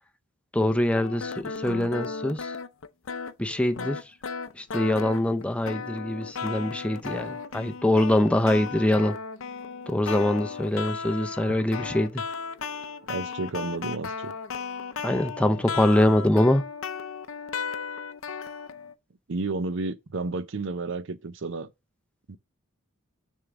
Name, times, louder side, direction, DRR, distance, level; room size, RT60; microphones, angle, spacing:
voice 1, 0.5-2.5 3.4-4.0 4.5-9.2 9.9-12.2 15.0-16.6, left 1 dB, 5° left, 0.5 m, -24 dB
sound 1, 0.9-18.9, left 5 dB, 65° left, 0.5 m, -35 dB
voice 2, 13.1-14.3 19.3-21.7 22.3-22.4, right 3 dB, 60° right, 0.6 m, -31 dB
6.5 x 3.6 x 6.0 m
head